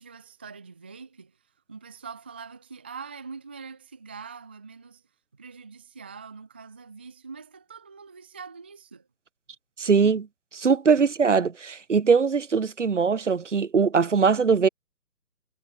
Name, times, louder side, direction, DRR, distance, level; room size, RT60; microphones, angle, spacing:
voice 1, 0.0-5.0 5.3-9.1 11.0-11.1, right 5 dB, 5° right, 0.8 m, -43 dB
voice 2, 9.8-10.3 10.5-14.7, right 5 dB, 50° right, 2.1 m, -21 dB
figure-of-eight pair, 150°, 47 cm